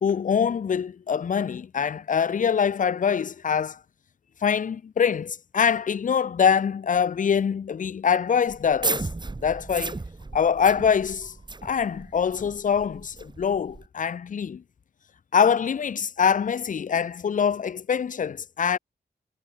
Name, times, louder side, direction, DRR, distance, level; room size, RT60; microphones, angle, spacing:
voice 1, 0.0-3.8 4.4-9.1 9.4-10.0 10.3-11.3 11.6-14.6 15.3-18.8, left 7 dB, 45° left, 0.4 m, -24 dB
sound 1, 8.5-13.9, right 3 dB, 25° right, 0.8 m, -34 dB
wide cardioid pair, 75°, 18 cm